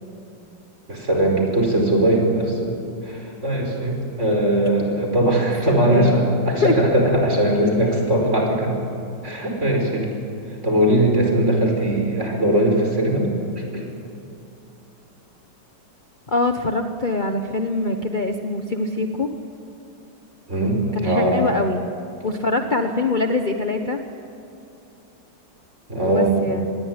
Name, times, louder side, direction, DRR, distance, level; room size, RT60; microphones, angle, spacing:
voice 1, 0.9-2.7 3.0-8.8 9.2-10.1 10.6-13.3 13.6-13.8 20.5-21.4 25.9-26.3, right 1 dB, 40° right, 1 dB, 5.6 m, -20 dB
voice 2, 5.7-6.2 6.5-6.8 16.3-19.3 20.9-21.8 22.2-24.0 26.0-26.7, left 2 dB, 30° left, 5 dB, 1.1 m, -23 dB
27.0 x 20.5 x 9.7 m, 2.8 s
omnidirectional pair, 1.9 m